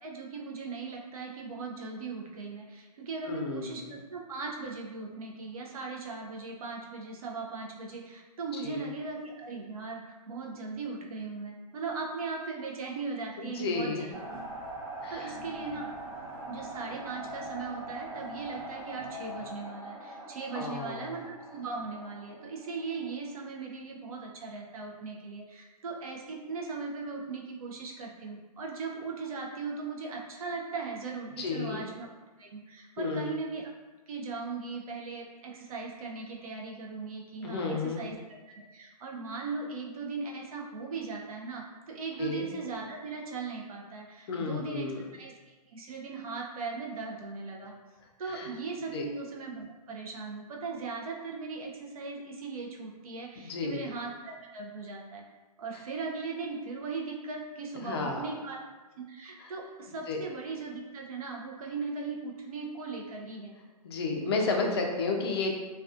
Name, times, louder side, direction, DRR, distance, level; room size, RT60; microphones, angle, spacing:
voice 1, 0.0-3.8 4.1-13.9 15.1-15.8 16.5-32.1 32.4-33.7 34.1-38.2 38.5-47.7 48.2-55.2 55.6-58.6 59.0-63.6, right 4 dB, 65° right, -1 dB, 0.5 m, -38 dB
voice 2, 3.3-3.9 8.6-8.8 13.4-14.0 15.0-15.3 20.5-21.2 31.4-31.8 33.0-33.3 37.4-38.0 42.2-42.5 44.3-45.0 48.2-48.5 48.9-49.0 53.4-53.9 57.8-58.2 59.4-59.5 60.1-60.2 63.8-65.5, left 4 dB, 40° left, 1 dB, 0.4 m, -32 dB
sound 1, 14.1-23.2, right 1 dB, 40° right, 0.8 m, -42 dB
2.3 x 2.3 x 2.4 m, 1.2 s
hypercardioid pair, 150°, 20 cm